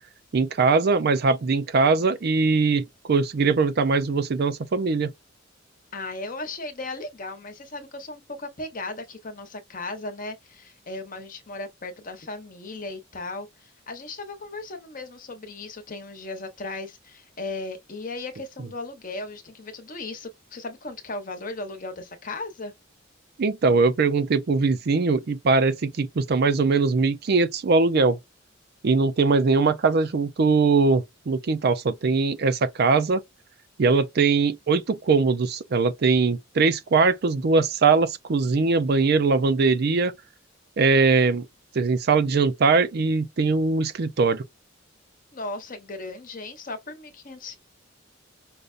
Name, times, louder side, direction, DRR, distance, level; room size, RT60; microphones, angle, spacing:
voice 1, 0.3-5.1 23.4-28.2 28.8-33.2 33.8-40.1 40.8-41.5 41.7-44.4, right 4 dB, 55° right, 0.4 m, -21 dB
voice 2, 5.9-22.7 45.3-47.6, left 2 dB, 45° left, 0.9 m, -36 dB
5.2 x 2.2 x 2.4 m
head